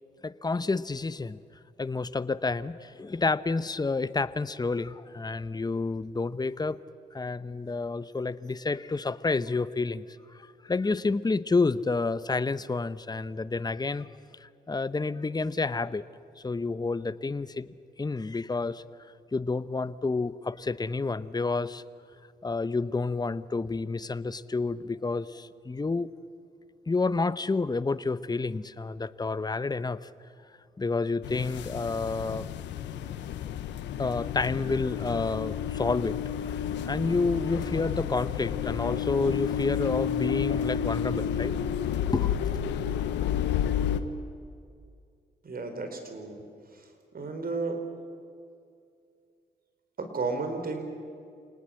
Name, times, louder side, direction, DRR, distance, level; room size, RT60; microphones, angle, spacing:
voice 1, 0.2-1.4 1.8-6.8 7.1-10.0 10.6-14.1 14.4-16.0 16.4-17.7 18.0-18.8 19.3-21.8 22.4-26.1 26.9-30.1 30.8-32.5 34.0-36.2 36.9-41.5 42.1-42.6, left 3 dB, 20° left, 15 dB, 0.9 m, -29 dB
sound 1, 31.2-44.0, left 9 dB, 90° left, 1.1 m, -31 dB
voice 2, 45.4-46.4 47.1-47.8 50.0-50.8, right 3 dB, 55° right, 6 dB, 4.6 m, -32 dB
28.0 x 19.0 x 7.8 m, 2.4 s
supercardioid pair, 55°, 18 cm